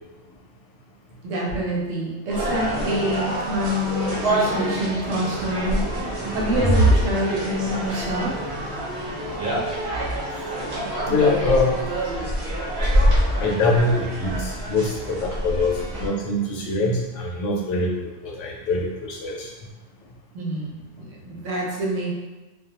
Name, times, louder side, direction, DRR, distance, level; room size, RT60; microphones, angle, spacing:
voice 1, 1.2-8.3 20.3-22.1, equal, 85° right, -3 dB, 1.0 m, -27 dB
sound 1, 2.3-16.1, right 1 dB, 60° right, 0.8 m, -25 dB
voice 2, 11.0-11.9 13.4-19.5, left 2 dB, 75° left, -2 dB, 0.9 m, -24 dB
2.3 x 2.2 x 2.8 m, 1.2 s
omnidirectional pair, 1.3 m